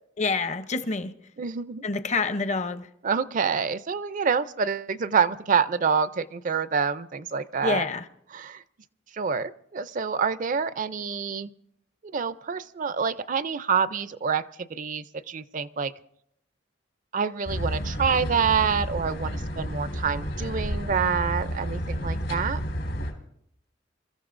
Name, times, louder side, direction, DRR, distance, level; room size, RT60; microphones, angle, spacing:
voice 1, 0.2-1.1 1.8-2.9 7.6-8.1, left 3 dB, 40° left, 0.7 m, -27 dB
voice 2, 1.4-1.8 3.0-7.8 8.3-8.6 9.1-11.5 12.0-14.4 14.7-15.9 17.1-22.6, right 6 dB, 45° right, 0.4 m, -27 dB
sound 1, 17.5-23.1, equal, 80° left, 3.9 m, -31 dB
28.0 x 14.0 x 2.5 m
head